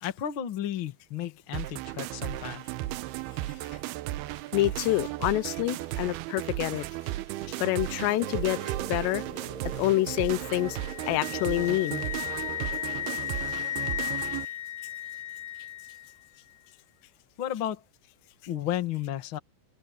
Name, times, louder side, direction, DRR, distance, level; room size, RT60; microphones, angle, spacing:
voice 1, 0.0-2.6 17.4-17.8 18.5-19.4, left 11 dB, 50° left, 1.6 m, -33 dB
sound 1, 1.5-14.5, right 16 dB, 80° right, 2.5 m, -35 dB
voice 2, 4.5-6.9 7.5-8.6 8.9-9.2 9.6-10.8 11.1-12.1, left 17 dB, 90° left, 2.9 m, -27 dB
sound 2, 8.1-14.5, right 2 dB, 55° right, 8.0 m, -45 dB
Wind instrument woodwind instrument, 10.2-16.2, left 12 dB, 30° left, 4.6 m, -35 dB
open air
omnidirectional pair, 4.8 m